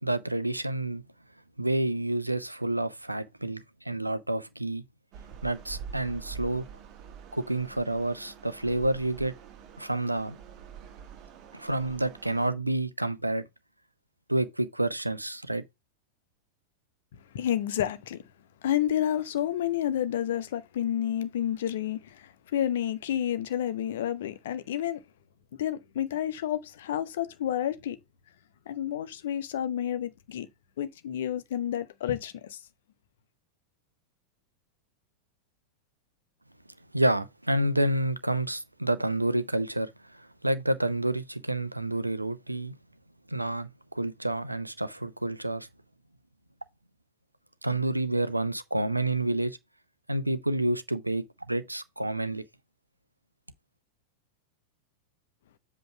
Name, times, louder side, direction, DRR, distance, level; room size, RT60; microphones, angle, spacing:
voice 1, 0.0-1.0 1.6-4.8 5.4-6.7 7.3-9.3 9.8-10.4 11.5-13.5 14.3-15.6 36.9-42.7 43.3-45.7 47.6-49.6 50.1-52.4, right 1 dB, 85° right, 0.7 m, -29 dB
sound 1, 5.1-12.5, right 7 dB, 35° right, 1.5 m, -46 dB
voice 2, 17.3-18.2 18.6-25.0 25.6-28.0 28.7-30.5 30.8-32.6, left 11 dB, 60° left, 0.9 m, -30 dB
7.9 x 3.1 x 5.5 m
figure-of-eight pair, 90°, 0 cm